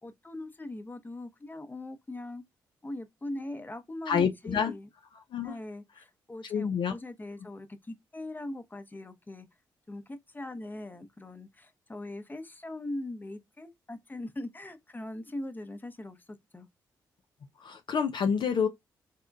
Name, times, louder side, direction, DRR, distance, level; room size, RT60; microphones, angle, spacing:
voice 1, 0.0-2.4 2.8-4.9 5.4-9.5 9.9-16.7, left 1 dB, 20° left, 0.8 m, -41 dB
voice 2, 4.1-4.7 5.3-5.6 6.4-6.9 17.6-18.7, left 7 dB, 55° left, 0.4 m, -28 dB
3.5 x 2.2 x 2.5 m
hypercardioid pair, 40°, 9 cm